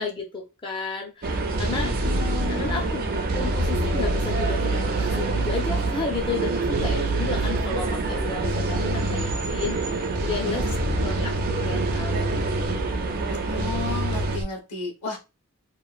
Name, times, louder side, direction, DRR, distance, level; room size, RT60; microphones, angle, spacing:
voice 1, 0.0-1.9 2.4-3.0 3.3-10.7 11.0-11.3 11.7-12.4, left 4 dB, 20° left, 1 dB, 0.4 m, -32 dB
sound 1, 1.2-14.4, right 3 dB, 40° right, 0.4 m, -27 dB
sound 2, 1.6-2.5 3.3-5.9 6.7-7.6 8.4-9.4 10.2-12.8 13.6-14.4, right 1 dB, 90° right, 0.8 m, -28 dB
voice 2, 1.8-3.2 10.4-11.3 13.4-15.2, left 4 dB, 75° left, 2 dB, 1.2 m, -34 dB
3.0 x 2.4 x 2.4 m, 0.28 s
head